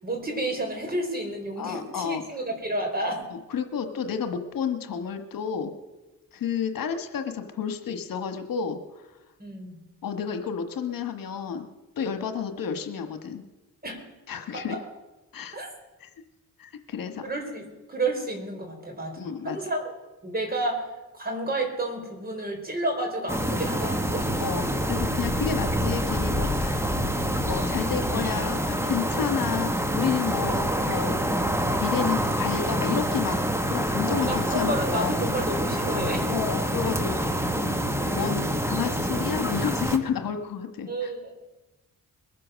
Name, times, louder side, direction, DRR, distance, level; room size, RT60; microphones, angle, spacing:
voice 1, 0.0-3.2 9.4-9.8 13.8-14.0 14.5-14.6 15.5-15.7 17.0-19.9 20.2-20.9 21.1-24.3 34.1-36.3 40.9-41.4, right 1 dB, 25° right, 1 dB, 4.4 m, -31 dB
voice 2, 1.6-2.2 3.3-5.7 6.3-8.8 10.0-11.7 12.0-13.4 14.3-14.8 15.3-15.6 16.0-16.1 16.6-17.2 19.2-19.6 24.4-26.8 27.4-31.3 31.8-35.1 36.3-41.1, left 7 dB, 75° left, 8 dB, 1.4 m, -31 dB
sound 1, 23.3-40.0, equal, 10° right, 1.4 m, -26 dB
22.0 x 7.7 x 6.3 m, 1.1 s
cardioid pair, 70°, 34 cm